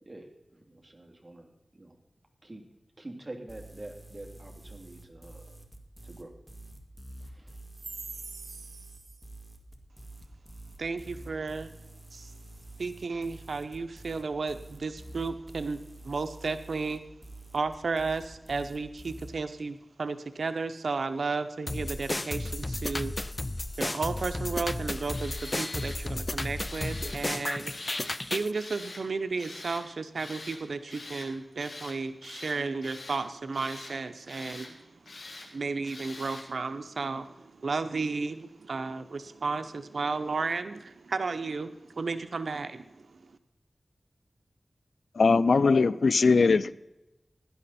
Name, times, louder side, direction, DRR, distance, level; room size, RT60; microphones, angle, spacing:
voice 1, 0.0-2.0 2.4-2.6 3.0-5.5 6.0-6.3 7.2-7.6, right 1 dB, 30° right, 2.8 m, -46 dB
sound 1, 3.5-19.3, right 1 dB, 5° right, 2.1 m, -48 dB
voice 2, 10.8-11.7 12.8-15.8 16.1-17.0 17.5-18.2 18.5-23.1 23.8-25.3 25.6-27.6 28.3-34.6 35.5-37.2 37.6-40.8 41.1-41.7 42.0-42.7, right 4 dB, 85° right, 0.7 m, -33 dB
sound 2, 21.7-28.5, left 1 dB, 30° left, 0.6 m, -33 dB
Tools, 25.1-26.0 26.6-27.2 27.6-28.2 28.5-29.0 29.4-29.8 30.2-30.6 30.9-31.3 31.6-32.0 32.2-33.2 33.5-33.9 34.3-34.7 35.1-35.5 35.8-36.5, left 2 dB, 70° left, 2.9 m, -44 dB
voice 3, 45.2-46.7, left 4 dB, 90° left, 0.4 m, -21 dB
16.5 x 11.5 x 4.2 m
wide cardioid pair, 55°, 0 cm